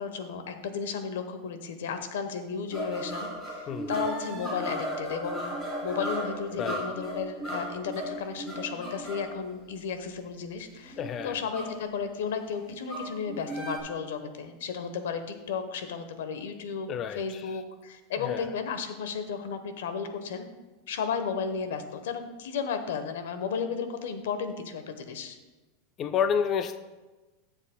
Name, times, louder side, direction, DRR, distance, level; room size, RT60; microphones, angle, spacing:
voice 1, 0.0-5.5 5.8-11.0 11.2-20.5 20.9-25.4, left 6 dB, 90° left, 8 dB, 0.9 m, -34 dB
sound 1, 2.7-9.4 10.8-11.8 12.8-13.8, equal, 5° left, 2.9 m, -36 dB
voice 2, 3.7-4.0 6.5-6.8 11.0-11.4 16.9-17.5 18.2-18.5 26.0-26.8, left 7 dB, 25° left, 9 dB, 0.3 m, -30 dB
13.5 x 7.3 x 2.2 m, 1.2 s
supercardioid pair, 165°, 0 cm